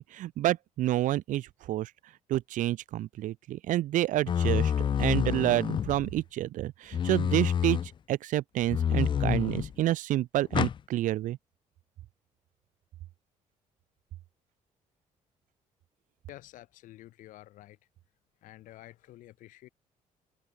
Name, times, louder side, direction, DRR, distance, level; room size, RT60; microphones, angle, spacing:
voice 1, 0.0-1.9 2.3-4.7 5.0-11.4, right 14 dB, 80° right, 1.5 m, -29 dB
sound 1, 4.3-6.2 6.9-7.9 8.7-9.7 10.5-10.8, left 8 dB, 40° left, 0.4 m, -28 dB
voice 2, 16.3-17.8 18.4-19.7, left 15 dB, 90° left, 3.7 m, -50 dB
cardioid pair, 120°, 13 cm